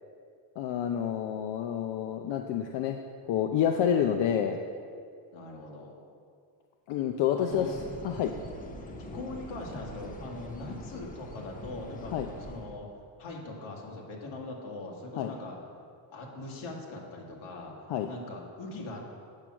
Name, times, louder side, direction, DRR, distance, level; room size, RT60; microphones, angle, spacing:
voice 1, 0.6-3.0 3.3-4.6 6.9-8.3 12.1-12.3 15.2-15.3 17.9-18.1, left 9 dB, 60° left, 4 dB, 0.7 m, -28 dB
voice 2, 5.3-6.0 7.4-7.7 9.0-12.9 13.2-15.6 16.1-17.8 18.1-19.1, left 2 dB, 75° left, -1 dB, 2.2 m, -41 dB
sound 1, 7.5-12.8, left 1 dB, 15° left, 0.7 m, -43 dB
8.6 x 6.1 x 6.1 m, 2.2 s
cardioid pair, 125°, 49 cm